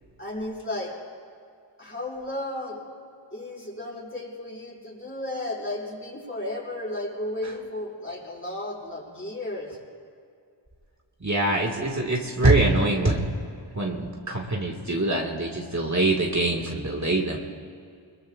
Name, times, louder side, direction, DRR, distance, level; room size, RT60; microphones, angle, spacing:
voice 1, 0.2-0.9 1.8-2.8 3.3-9.8, left 1 dB, 25° left, -5 dB, 5.6 m, -34 dB
voice 2, 11.2-13.3 13.7-17.4, right 2 dB, 35° right, -2 dB, 2.0 m, -24 dB
25.5 x 22.0 x 2.5 m, 2.3 s
cardioid pair, 40°, 46 cm